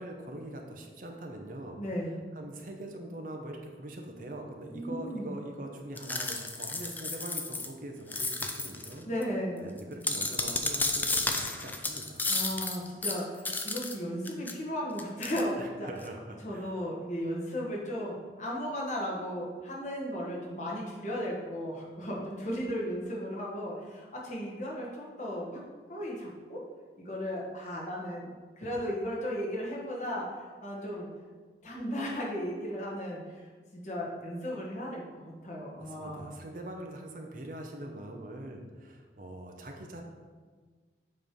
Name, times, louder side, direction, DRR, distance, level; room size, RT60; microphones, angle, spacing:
voice 1, 0.0-1.8 2.3-9.1 9.6-12.6 15.6-16.7 35.8-40.0, right 1 dB, 50° right, 2 dB, 0.7 m, -43 dB
voice 2, 1.8-2.1 4.7-5.3 9.0-9.7 12.3-15.9 16.4-25.6 25.9-26.6 27.0-28.3 28.6-30.3 30.6-31.1 31.6-36.4, equal, 40° left, -4 dB, 1.4 m, -35 dB
sound 1, 6.0-7.7 8.1-8.9 9.2-9.3 9.8-14.0 14.2-14.5 15.0-15.4, left 3 dB, 10° left, 0.3 m, -32 dB
7.4 x 3.2 x 5.2 m, 1.5 s
head